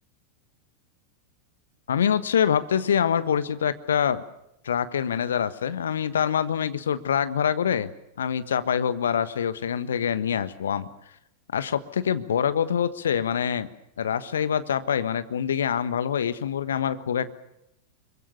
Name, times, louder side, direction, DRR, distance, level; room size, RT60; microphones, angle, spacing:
voice 1, 1.9-4.2 4.6-7.9 8.2-10.9 11.5-13.7 14.0-17.3, left 8 dB, 65° left, 12 dB, 1.3 m, -25 dB
25.5 x 23.5 x 6.9 m, 0.84 s
figure-of-eight pair, 90°, 0 cm